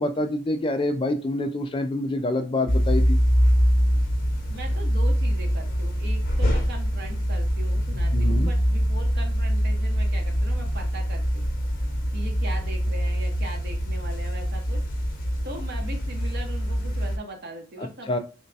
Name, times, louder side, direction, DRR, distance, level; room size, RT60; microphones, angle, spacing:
voice 1, 0.0-3.2 8.1-8.5 18.1-18.2, left 1 dB, 25° left, 6 dB, 0.4 m, -26 dB
sound 1, 2.7-17.2, equal, 45° left, 0.8 m, -24 dB
voice 2, 4.5-11.5 12.1-14.8 15.4-18.2, right 1 dB, 55° right, 2 dB, 0.9 m, -40 dB
3.2 x 2.2 x 4.0 m, 0.33 s
head